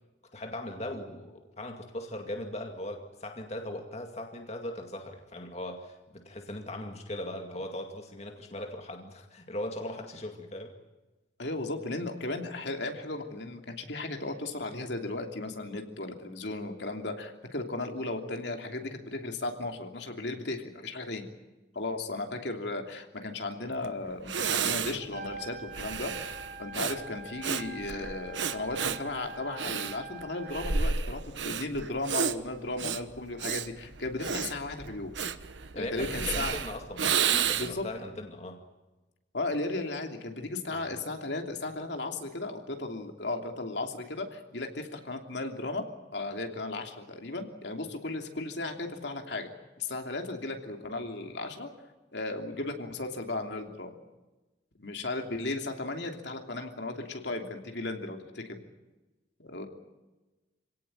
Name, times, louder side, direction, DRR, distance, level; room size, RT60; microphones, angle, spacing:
voice 1, 0.3-10.7 35.7-38.6 40.7-40.9, left 1 dB, 35° left, 3 dB, 2.2 m, -39 dB
voice 2, 11.4-21.2 21.7-35.1 35.7-36.5 37.5-37.8 39.3-45.8 46.1-49.5 49.8-51.7 52.1-53.9 54.8-58.6 59.4-59.7, left 2 dB, 70° left, 4 dB, 3.0 m, -35 dB
Breathing, 23.8-23.9 24.2-37.9, right 7 dB, 80° right, 1.2 m, -32 dB
Trumpet, 25.0-30.8, right 3 dB, 40° right, 2.6 m, -44 dB
27.0 x 18.0 x 9.2 m, 1.1 s
head